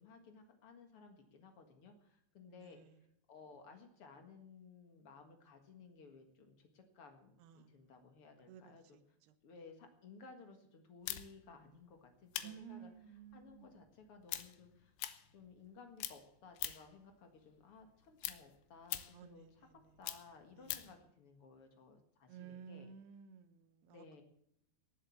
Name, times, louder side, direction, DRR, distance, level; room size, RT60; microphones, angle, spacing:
voice 1, 0.0-2.8 3.3-9.0 9.4-14.9 15.3-19.7 20.0-22.9 23.9-24.2, left 4 dB, 55° left, 5 dB, 1.7 m, -58 dB
voice 2, 2.5-2.9 7.4-7.8 8.5-8.8 12.4-13.7 19.1-19.7 20.6-20.8 22.3-24.2, right 8 dB, 75° right, 11 dB, 2.9 m, -54 dB
sound 1, 11.1-15.7 16.0-17.0 17.4-21.0, left 14 dB, 90° left, 3.2 m, -44 dB
18.5 x 7.6 x 7.3 m, 0.73 s
omnidirectional pair, 4.9 m